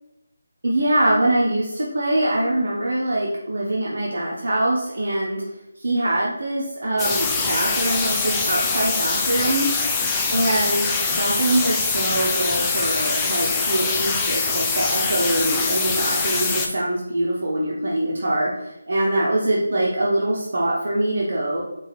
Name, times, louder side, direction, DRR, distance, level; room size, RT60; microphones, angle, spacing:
voice 1, 0.6-5.4 5.8-9.7 10.3-21.6, right 1 dB, 70° right, -4 dB, 0.7 m, -23 dB
sound 1, 7.0-16.7, left 4 dB, 10° left, 0.4 m, -23 dB
4.5 x 2.4 x 3.0 m, 0.95 s
figure-of-eight pair, 160°, 0 cm